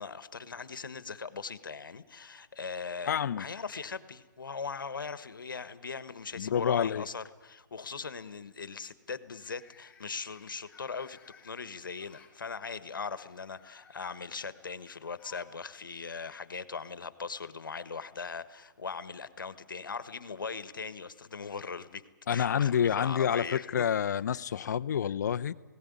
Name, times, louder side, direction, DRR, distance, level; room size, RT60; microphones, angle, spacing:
voice 1, 0.0-22.0 22.3-23.9, left 5 dB, 85° left, 1.3 m, -40 dB
voice 2, 3.1-3.4 6.4-7.1 22.3-25.5, left 8 dB, 60° left, 0.7 m, -28 dB
sound 1, 9.3-12.4 13.2-15.6 15.9-16.0 17.1-17.2, left 6 dB, 10° left, 2.4 m, -60 dB
18.5 x 17.5 x 9.6 m
hypercardioid pair, 145°, 11 cm